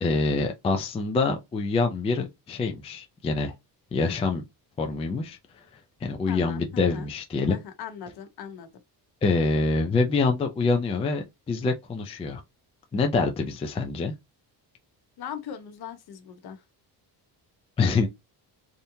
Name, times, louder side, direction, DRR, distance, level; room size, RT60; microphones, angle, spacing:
voice 1, 0.0-3.5 3.9-4.4 4.8-5.4 6.0-7.6 9.2-12.4 12.9-14.1 17.8-18.1, left 3 dB, 15° left, 0.3 m, -25 dB
voice 2, 6.3-7.1 7.5-8.7 15.2-16.6, left 8 dB, 65° left, 1.0 m, -39 dB
3.5 x 2.7 x 2.7 m
cardioid pair, 175°, 41 cm